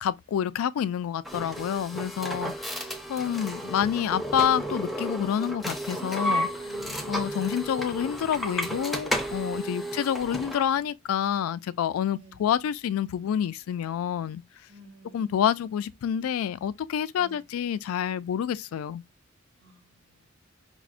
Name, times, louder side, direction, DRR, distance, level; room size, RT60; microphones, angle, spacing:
voice 1, 0.0-6.5 7.1-14.4 15.1-19.0, left 9 dB, 85° left, 0.3 m, -28 dB
sound 1, 1.2-10.7, equal, ahead, 0.5 m, -33 dB
voice 2, 6.6-8.1 12.1-12.5 14.7-15.7 17.1-17.5 19.6-20.3, equal, 80° right, 1.7 m, -55 dB
5.9 x 2.0 x 2.5 m
head